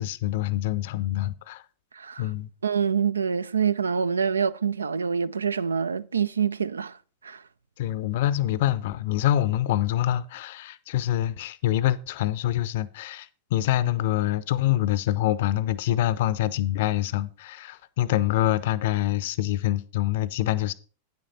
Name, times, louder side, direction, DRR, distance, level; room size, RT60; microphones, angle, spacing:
voice 1, 0.0-1.6 2.2-2.5 7.8-20.7, left 13 dB, 55° left, 0.5 m, -25 dB
voice 2, 1.9-2.2 2.6-7.0 7.2-7.4, right 6 dB, 75° right, 0.3 m, -26 dB
9.1 x 8.0 x 4.1 m
figure-of-eight pair, 90°, 0 cm